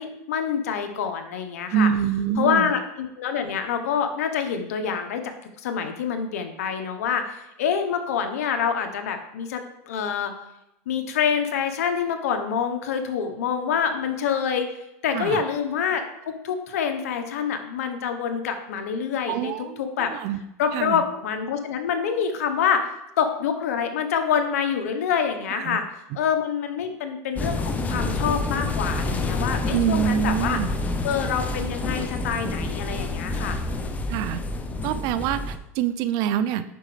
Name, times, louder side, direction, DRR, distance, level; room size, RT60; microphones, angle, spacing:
voice 1, 0.0-1.9 2.4-5.2 5.6-10.3 10.9-14.7 15.0-19.5 19.8-20.1 20.6-22.9 23.2-25.8 26.1-30.6 31.0-33.6, left 7 dB, 85° left, 7 dB, 1.1 m, -26 dB
voice 2, 1.7-2.7 15.1-15.4 19.3-20.4 20.7-21.0 25.5-25.8 29.7-30.7 34.1-34.4 34.8-36.6, right 9 dB, 55° right, 13 dB, 0.5 m, -25 dB
sound 1, 27.4-35.6, left 2 dB, 20° left, 0.7 m, -28 dB
9.2 x 6.2 x 3.3 m, 0.86 s
supercardioid pair, 120°, 8 cm